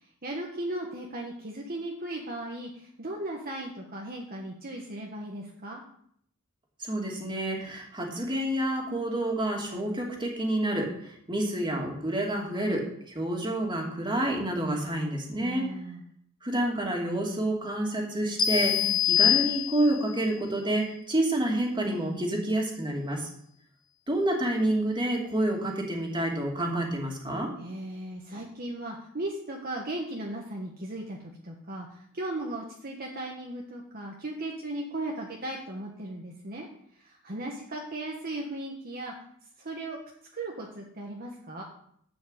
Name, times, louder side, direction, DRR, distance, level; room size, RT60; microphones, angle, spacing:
voice 1, 0.2-5.8 15.4-16.0 18.7-19.0 27.6-36.7 36.9-39.1 39.6-40.0 40.3-41.6, right 1 dB, 45° right, -1 dB, 1.3 m, -37 dB
voice 2, 6.8-12.9 13.1-15.7 16.4-23.3 24.1-27.5, right 1 dB, 20° right, 0 dB, 2.5 m, -28 dB
sound 1, 18.4-20.1, left 10 dB, 20° left, 1.0 m, -24 dB
11.5 x 5.2 x 8.1 m, 0.69 s
head